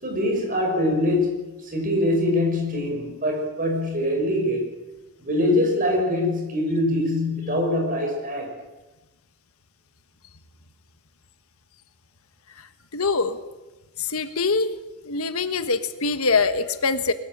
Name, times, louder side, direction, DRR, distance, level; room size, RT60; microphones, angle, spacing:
voice 1, 0.0-4.7 5.2-8.5, left 1 dB, 40° right, 2 dB, 6.2 m, -23 dB
voice 2, 12.9-13.4 14.0-14.7 15.0-17.1, left 4 dB, 75° left, 10 dB, 1.4 m, -23 dB
22.0 x 14.5 x 8.9 m, 1.1 s
head